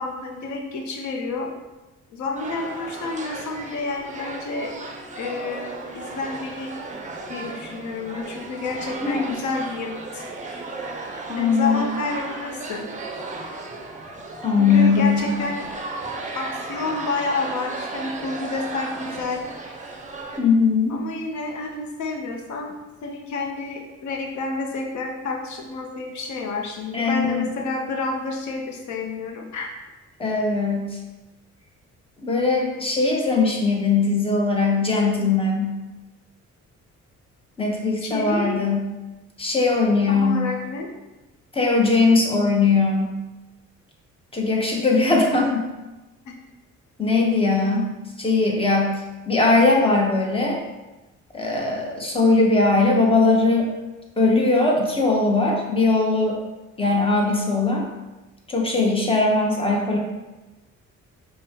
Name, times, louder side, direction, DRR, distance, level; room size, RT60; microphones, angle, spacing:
voice 1, 0.0-1.5 2.1-4.7 5.2-6.7 7.3-10.2 11.3-12.8 14.6-15.7 16.3-19.4 20.9-22.7 23.0-29.7 38.0-38.6 40.1-40.9 46.3-46.4, left 3 dB, 70° left, 1 dB, 0.8 m, -29 dB
sound 1, 2.3-20.4, right 3 dB, 25° right, 0.6 m, -35 dB
voice 2, 9.0-9.4 11.3-11.8 14.4-15.4 20.4-21.0 26.9-27.5 30.2-31.0 32.2-35.8 37.6-38.9 39.4-40.5 41.5-43.2 44.3-45.7 47.0-47.9 48.2-49.0 49.3-50.6 51.3-53.7 54.2-56.4 56.8-57.8 58.5-60.0, left 3 dB, 20° left, 0 dB, 0.8 m, -20 dB
5.2 x 2.3 x 2.8 m, 1.1 s
cardioid pair, 90°, 30 cm